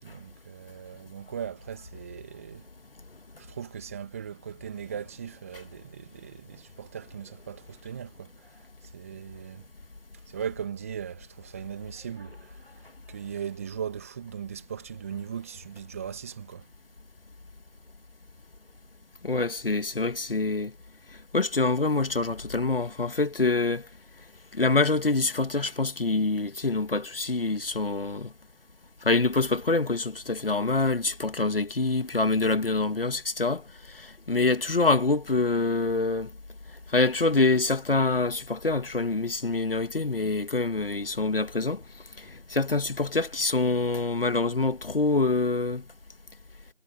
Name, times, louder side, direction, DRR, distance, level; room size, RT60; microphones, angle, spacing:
voice 1, 0.0-2.6 3.4-8.3 8.9-9.6 10.3-12.6 13.1-16.7, right 8 dB, 10° right, 2.4 m, -38 dB
voice 2, 19.2-20.7 21.3-23.8 24.5-28.3 29.0-33.6 34.0-36.3 36.9-41.8 42.5-45.8, left 3 dB, 55° left, 2.3 m, -25 dB
figure-of-eight pair, 165°, 34 cm